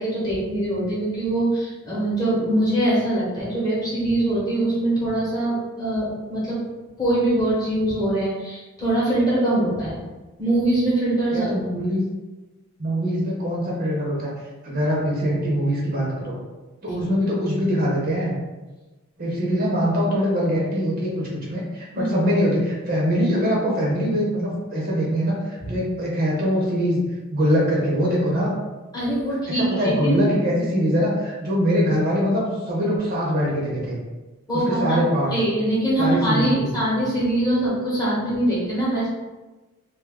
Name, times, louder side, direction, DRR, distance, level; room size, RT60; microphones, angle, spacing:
voice 1, 0.0-6.6 7.0-10.0 10.4-11.5 21.9-22.1 28.9-30.2 34.5-35.0 35.3-39.1, right 1 dB, 15° left, -7 dB, 0.9 m, -23 dB
voice 2, 11.3-12.0 12.8-14.3 14.6-16.4 16.8-18.3 19.2-27.0 27.3-28.5 29.6-34.0 34.5-35.3 36.0-36.8, equal, 45° right, -4 dB, 0.7 m, -23 dB
2.4 x 2.3 x 3.5 m, 1.2 s
head